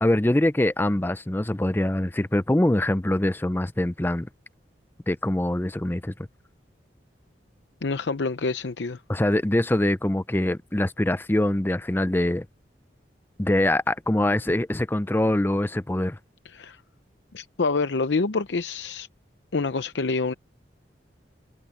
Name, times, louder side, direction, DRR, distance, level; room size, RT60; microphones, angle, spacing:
voice 1, 0.0-4.3 5.1-6.1 9.1-12.5 13.4-16.2, left 1 dB, 10° left, 0.5 m, -23 dB
voice 2, 7.8-9.0 16.4-16.8 17.3-19.1 19.5-20.3, left 3 dB, 80° left, 0.7 m, -27 dB
head